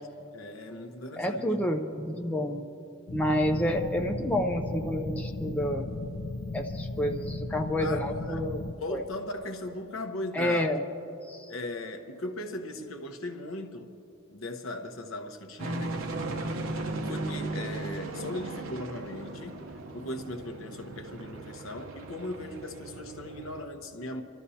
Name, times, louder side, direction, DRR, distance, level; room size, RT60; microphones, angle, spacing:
voice 1, 0.3-1.4 7.8-8.5 8.7-10.7 11.5-13.9 14.3-16.0 17.1-19.7 19.9-24.2, left 2 dB, 85° left, 1.0 m, -38 dB
voice 2, 1.2-2.6 3.1-5.9 6.5-8.6 8.9-9.0 10.3-10.8 11.3-11.5, equal, 5° left, 0.5 m, -29 dB
sound 1, 3.1-8.7, left 2 dB, 60° left, 0.5 m, -36 dB
sound 2, 15.6-23.6, right 2 dB, 80° right, 0.9 m, -37 dB
27.0 x 13.0 x 2.8 m
head